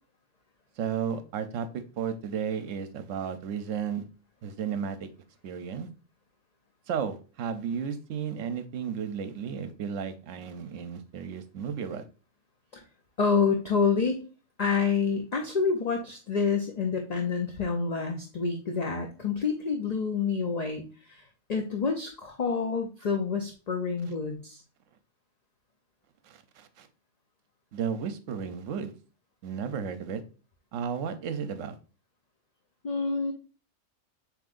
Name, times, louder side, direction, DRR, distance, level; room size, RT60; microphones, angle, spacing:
voice 1, 0.8-1.7 1.9-4.0 4.4-5.1 5.4-5.9 6.9-12.0 26.3-26.9 27.7-28.9 29.4-30.2 30.7-31.7, right 7 dB, 70° right, 1.0 m, -33 dB
voice 2, 13.2-14.2 14.6-24.6 32.8-33.3, left 5 dB, 45° left, 0.6 m, -28 dB
7.3 x 3.0 x 2.5 m
omnidirectional pair, 1.4 m